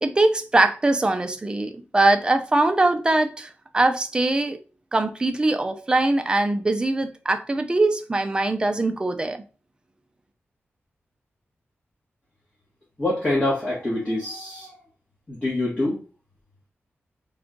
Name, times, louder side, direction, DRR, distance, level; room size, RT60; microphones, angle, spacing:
voice 1, 0.0-4.6 4.9-9.4, right 2 dB, 20° right, 0.4 m, -22 dB
voice 2, 13.0-14.8 15.3-16.0, left 1 dB, 30° left, 1.4 m, -25 dB
3.5 x 2.4 x 3.8 m
wide cardioid pair, 145°, 5 cm